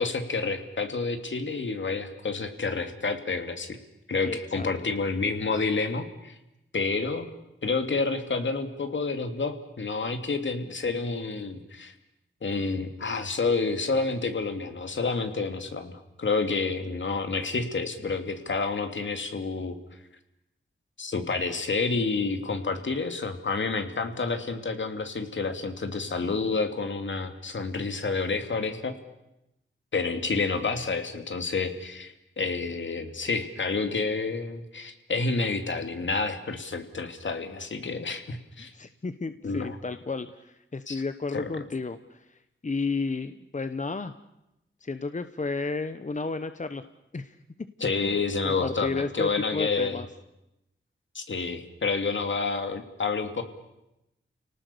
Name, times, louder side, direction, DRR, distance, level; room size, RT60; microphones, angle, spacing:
voice 1, 0.0-3.8 4.1-6.4 6.7-7.3 7.6-11.9 12.4-19.8 21.0-28.9 29.9-38.7 39.4-39.8 40.9-41.0 41.3-41.6 47.8-50.0 51.1-53.4, left 4 dB, 65° left, 7 dB, 2.7 m, -29 dB
voice 2, 4.2-4.9 38.6-44.1 44.8-46.8 47.1-47.4 47.9-48.2 48.4-50.1, left 3 dB, 35° left, 11 dB, 1.2 m, -32 dB
30.0 x 18.5 x 7.0 m, 0.91 s
cardioid pair, 50°, 21 cm